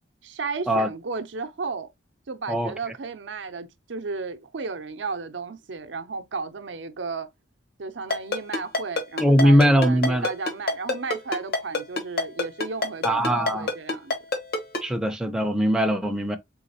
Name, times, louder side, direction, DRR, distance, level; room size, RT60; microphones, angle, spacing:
voice 1, 0.2-1.9 2.3-7.3 7.8-14.1, right 4 dB, 70° right, 0.6 m, -34 dB
Ringtone, 8.1-14.8, left 3 dB, 55° left, 1.2 m, -25 dB
voice 2, 9.2-10.3 13.0-13.7 14.8-16.4, equal, 5° right, 0.5 m, -20 dB
3.8 x 3.8 x 2.8 m
head